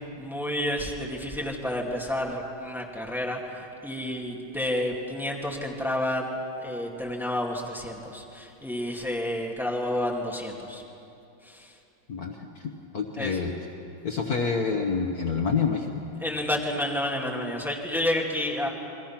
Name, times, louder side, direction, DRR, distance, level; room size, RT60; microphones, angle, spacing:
voice 1, 0.2-10.8 11.4-11.7 13.2-13.4 16.2-18.7, left 1 dB, ahead, -1 dB, 2.1 m, -30 dB
voice 2, 12.1-13.5 14.0-16.0, left 5 dB, 50° left, 2 dB, 1.6 m, -28 dB
29.5 x 21.0 x 5.9 m, 2.7 s
omnidirectional pair, 2.2 m